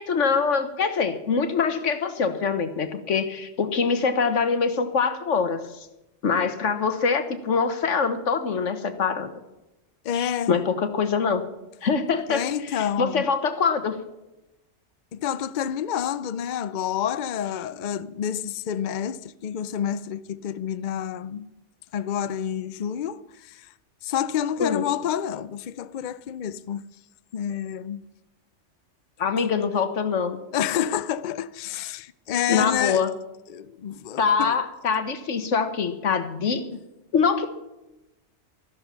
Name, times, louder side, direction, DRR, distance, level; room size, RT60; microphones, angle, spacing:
voice 1, 0.0-5.6 6.2-9.3 10.1-11.4 11.8-12.4 12.7-13.9 24.6-24.8 29.2-30.4 32.5-33.1 34.2-36.6 37.1-37.5, left 5 dB, 85° left, 1.6 m, -24 dB
voice 2, 10.0-10.6 12.3-13.3 15.1-21.5 21.9-23.7 24.0-26.8 27.3-28.0 29.4-29.5 30.5-33.1 33.5-34.5, left 9 dB, 50° left, 0.6 m, -29 dB
13.5 x 12.0 x 5.7 m
omnidirectional pair, 1.2 m